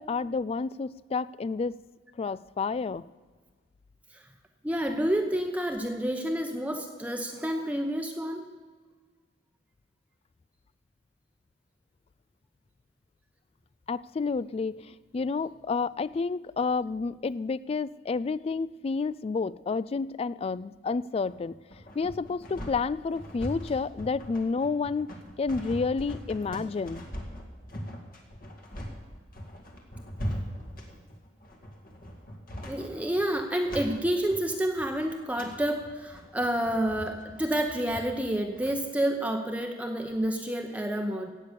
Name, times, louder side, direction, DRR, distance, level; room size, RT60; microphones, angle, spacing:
voice 1, 0.0-1.7 2.2-3.1 13.9-21.6 21.9-25.1 25.4-27.1, left 4 dB, 35° left, 18 dB, 0.3 m, -30 dB
voice 2, 4.6-8.4 32.6-41.3, right 1 dB, 10° right, 3 dB, 0.9 m, -29 dB
sound 1, 21.3-38.7, equal, 55° left, 2.2 m, -40 dB
16.0 x 8.5 x 6.8 m, 1.4 s
head